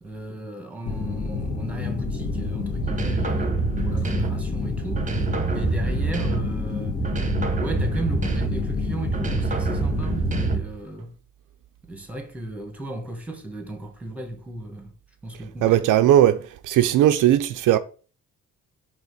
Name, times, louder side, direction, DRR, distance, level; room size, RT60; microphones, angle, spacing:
voice 1, 0.0-5.1 5.5-7.0 7.5-11.1 11.9-14.9 15.2-15.8 16.3-16.4, right 2 dB, 5° right, 1.5 m, -35 dB
sound 1, 0.9-10.6, left 4 dB, 50° left, 2.2 m, -28 dB
sound 2, 2.8-4.5 4.9-6.7 7.0-8.7 9.1-10.8, right 5 dB, 25° right, 1.0 m, -27 dB
voice 2, 15.6-17.8, right 12 dB, 80° right, 0.5 m, -18 dB
4.9 x 3.6 x 5.3 m
cardioid pair, 95°, 31 cm